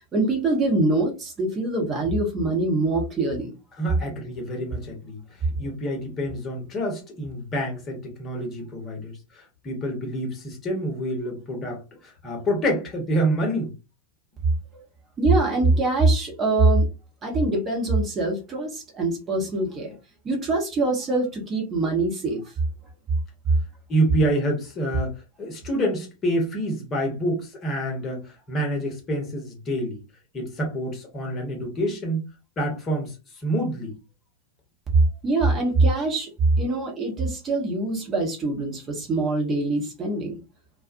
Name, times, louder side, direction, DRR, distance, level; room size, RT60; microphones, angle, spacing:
voice 1, 0.1-3.5 14.7-14.8 15.2-16.9 17.2-19.9 20.2-22.4 35.2-36.3 36.6-40.3, right 2 dB, 25° right, 0.9 m, -23 dB
voice 2, 3.8-5.2 5.6-13.7 23.9-30.0 30.3-32.2 32.6-33.1 33.4-33.9, right 1 dB, 25° left, 1.0 m, -27 dB
2.5 x 2.2 x 2.5 m
figure-of-eight pair, 90°, 0 cm